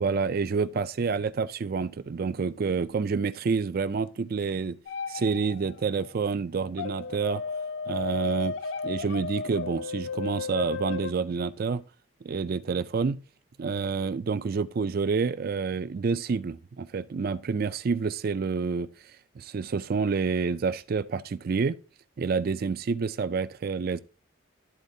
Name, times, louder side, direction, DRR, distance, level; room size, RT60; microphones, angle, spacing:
voice 1, 0.0-4.8 5.1-7.4 7.9-8.6 8.8-11.8 12.2-13.2 13.6-18.9 19.4-21.8 22.2-24.0, right 5 dB, 45° right, 0.4 m, -28 dB
sound 1, 4.9-5.8 6.8-11.1, left 4 dB, 60° left, 0.4 m, -34 dB
12.5 x 4.2 x 2.6 m
head